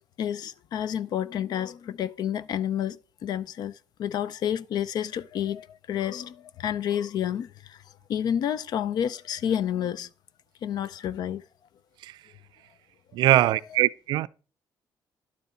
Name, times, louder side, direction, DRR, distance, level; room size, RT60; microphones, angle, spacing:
voice 1, 0.2-7.8 8.1-10.1 10.6-11.4, left 9 dB, 65° left, 0.5 m, -30 dB
voice 2, 13.1-14.3, right 14 dB, 80° right, 0.4 m, -22 dB
11.5 x 6.9 x 4.3 m
cardioid pair, 115°, 8 cm